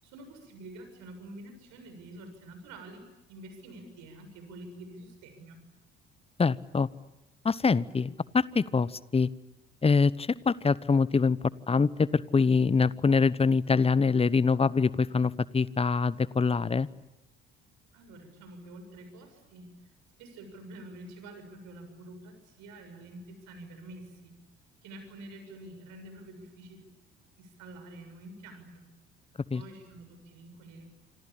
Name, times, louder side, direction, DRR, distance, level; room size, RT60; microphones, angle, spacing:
voice 1, 0.0-5.6 17.9-19.7 20.2-24.3 24.8-26.9 27.4-28.8 29.5-30.9, right 1 dB, 65° right, 7 dB, 7.2 m, -47 dB
voice 2, 6.4-6.9 7.4-9.3 9.8-11.4 11.7-16.9 29.5-29.6, left 4 dB, 20° left, 20 dB, 1.0 m, -24 dB
27.0 x 25.5 x 8.7 m, 1.0 s
figure-of-eight pair, 55°, 32 cm